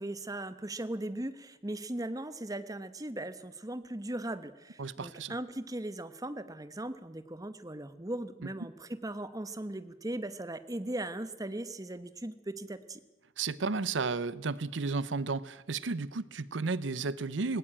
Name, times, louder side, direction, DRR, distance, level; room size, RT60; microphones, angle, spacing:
voice 1, 0.0-13.0, right 1 dB, 20° right, 1.1 m, -38 dB
voice 2, 4.8-5.4 13.4-17.6, right 4 dB, 70° right, 0.7 m, -33 dB
18.5 x 18.0 x 8.7 m
head